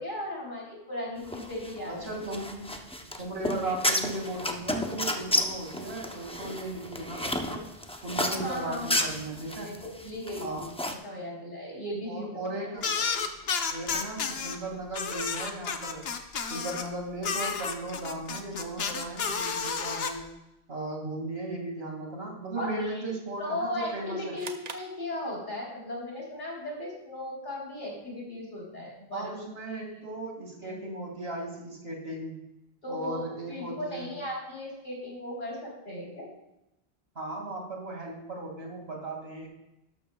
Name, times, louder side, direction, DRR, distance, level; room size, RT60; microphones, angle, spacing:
voice 1, 0.0-2.1 8.3-9.2 9.6-13.2 22.6-23.0 23.4-29.3 29.7-30.1 30.6-30.8 32.8-33.2 33.5-36.3, left 1 dB, 50° left, -4 dB, 3.8 m, -37 dB
sound 1, 1.3-10.9, left 1 dB, 5° left, 0.5 m, -32 dB
voice 2, 1.9-2.7 3.2-7.7 8.0-9.8 10.4-10.6 12.1-12.9 13.7-16.0 16.5-20.3 20.7-24.4 29.1-32.4 32.9-34.1 37.2-39.5, right 2 dB, 80° right, 0 dB, 2.5 m, -36 dB
sound 2, 12.8-14.6 14.9-16.9 17.2-20.1, left 5 dB, 75° left, 1.1 m, -31 dB
sound 3, 24.4-25.8, right 5 dB, 45° right, 0.7 m, -44 dB
12.0 x 12.0 x 2.3 m, 0.90 s
omnidirectional pair, 1.0 m